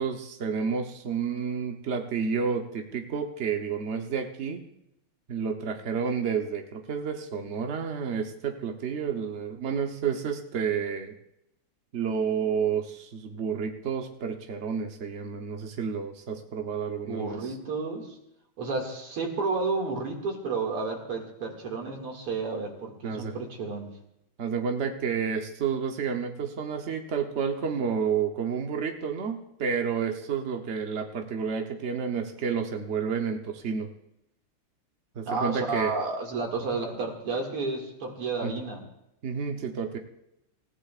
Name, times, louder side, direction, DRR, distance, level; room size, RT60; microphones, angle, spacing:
voice 1, 0.0-4.6 5.3-11.1 11.9-17.5 23.0-23.4 24.4-33.9 35.2-35.9 38.4-38.5 39.2-40.0, right 6 dB, 65° right, 4 dB, 0.6 m, -30 dB
voice 2, 17.1-18.2 18.6-23.9 35.3-38.8, right 3 dB, 85° right, 1 dB, 3.0 m, -31 dB
26.5 x 15.5 x 2.4 m, 0.81 s
omnidirectional pair, 2.4 m